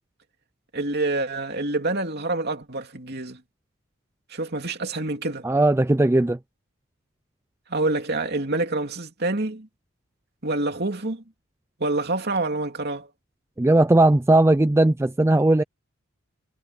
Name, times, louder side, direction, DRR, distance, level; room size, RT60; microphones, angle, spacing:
voice 1, 0.7-3.4 4.3-5.5 7.7-9.7 10.4-11.2 11.8-13.1, right 2 dB, 45° right, 2.9 m, -27 dB
voice 2, 5.4-6.4 13.6-15.6, right 2 dB, 10° right, 0.3 m, -18 dB
head